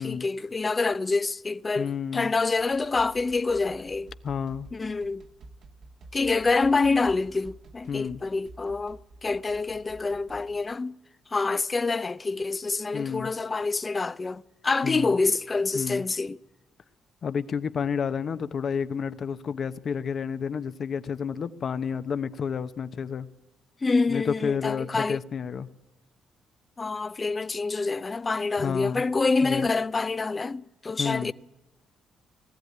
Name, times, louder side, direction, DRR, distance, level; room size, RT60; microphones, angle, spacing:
voice 1, 0.0-4.1 4.7-5.2 6.1-11.0 11.3-16.4 23.8-25.2 26.8-31.3, left 3 dB, 30° left, 0.6 m, -27 dB
voice 2, 1.8-2.3 4.2-4.7 7.9-8.2 12.9-13.3 14.8-15.1 15.7-16.0 17.2-23.3 24.1-25.7 28.6-29.0 29.4-29.7 31.0-31.3, left 6 dB, 55° left, 1.0 m, -30 dB
sound 1, 2.6-10.7, right 2 dB, 60° right, 1.6 m, -50 dB
20.0 x 14.5 x 9.5 m
cardioid pair, 90°, 0 cm